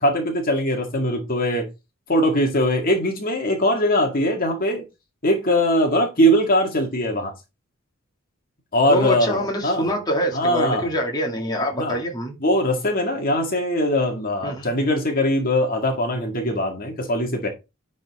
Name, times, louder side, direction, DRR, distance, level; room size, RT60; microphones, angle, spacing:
voice 1, 0.0-1.7 2.1-4.8 5.2-7.3 8.7-9.9 10.3-10.9 11.8-12.0 12.4-17.5, equal, 45° left, 1.9 m, -21 dB
voice 2, 8.9-12.3 14.4-14.7, equal, 20° left, 2.0 m, -25 dB
10.5 x 4.3 x 4.1 m
head